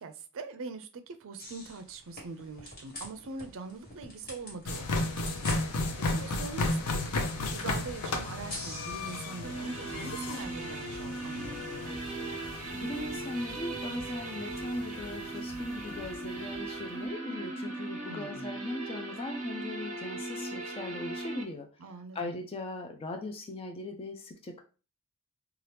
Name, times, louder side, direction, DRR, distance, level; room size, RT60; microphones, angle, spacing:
voice 1, 0.0-5.1 5.4-12.0 18.1-18.6 21.8-22.3, right 4 dB, 65° right, 0.4 m, -43 dB
sound 1, 1.4-9.5, left 1 dB, 40° left, 1.5 m, -47 dB
sound 2, 4.6-16.7, left 2 dB, 80° left, 0.6 m, -35 dB
sound 3, 9.4-21.4, right 2 dB, 35° right, 0.8 m, -38 dB
voice 2, 12.7-21.7 22.1-24.6, left 2 dB, 25° left, 0.3 m, -39 dB
2.8 x 2.3 x 3.3 m
head